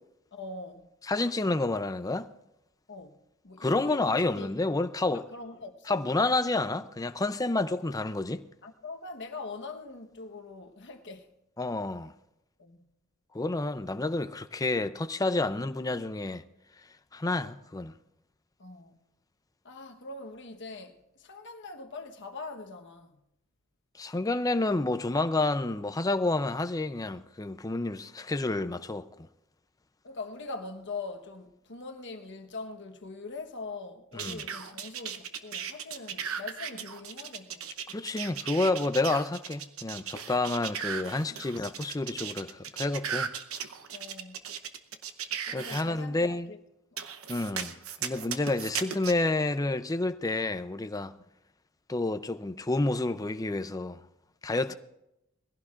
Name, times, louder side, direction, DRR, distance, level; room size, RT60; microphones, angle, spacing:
voice 1, 0.3-0.9 2.9-3.2 3.4-4.5 5.1-6.0 8.6-11.3 12.6-12.9 18.6-19.0 19.6-23.2 26.5-26.6 30.0-37.7 41.3-41.7 43.9-44.4 45.5-46.6 46.9-47.0 54.7-54.8, left 3 dB, 55° left, 1.2 m, -42 dB
voice 2, 1.0-2.3 3.6-5.3 5.9-8.4 11.6-12.1 13.3-16.4 17.1-17.9 24.0-29.3 34.1-34.4 37.9-43.3 45.5-46.5 47.3-47.7 48.0-51.1 51.9-54.0 54.4-54.7, left 2 dB, 15° left, 0.5 m, -29 dB
sound 1, 34.2-45.8 47.0-49.1, right 7 dB, 75° right, 0.9 m, -36 dB
21.5 x 16.0 x 2.5 m
head